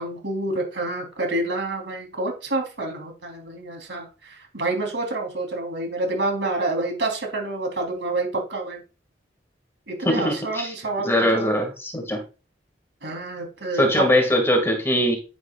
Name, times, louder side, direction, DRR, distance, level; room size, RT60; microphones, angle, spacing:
voice 1, 0.0-8.8 9.9-11.5 13.0-14.1, right 2 dB, 80° right, 2 dB, 3.8 m, -28 dB
voice 2, 10.1-10.7 11.0-12.2 13.7-15.2, equal, 15° left, 3 dB, 2.2 m, -21 dB
10.0 x 9.6 x 2.5 m, 0.33 s
head